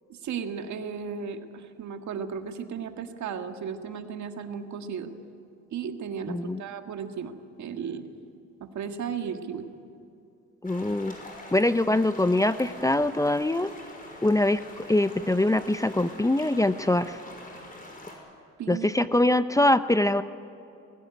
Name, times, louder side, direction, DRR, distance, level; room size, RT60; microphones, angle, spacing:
voice 1, 0.1-5.1 5.7-7.3 7.6-8.1 8.6-9.7 18.6-19.1, right 7 dB, 70° right, 6 dB, 1.8 m, -35 dB
voice 2, 6.3-6.6 10.6-11.2 11.5-13.7 14.2-17.2 18.7-20.2, left 1 dB, 10° left, 12 dB, 0.6 m, -23 dB
sound 1, 10.6-18.2, left 1 dB, 30° left, 6.0 m, -44 dB
22.0 x 17.0 x 9.7 m, 2.7 s
cardioid pair, 90°, 30 cm